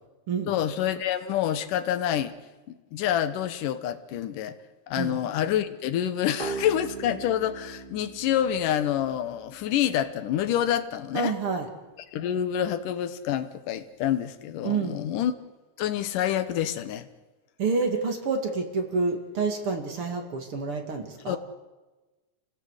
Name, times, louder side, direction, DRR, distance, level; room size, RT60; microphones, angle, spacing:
voice 1, 0.5-2.3 2.7-4.6 4.9-11.3 12.1-15.3 15.8-17.1 21.3-21.4, left 10 dB, 85° left, 12 dB, 2.7 m, -27 dB
sound 1, 6.4-9.9, right 4 dB, 20° right, 1.5 m, -39 dB
voice 2, 11.1-11.7 14.6-15.0 17.6-21.4, right 4 dB, 45° right, 5 dB, 2.8 m, -28 dB
29.0 x 17.5 x 8.1 m, 1.2 s
omnidirectional pair, 3.6 m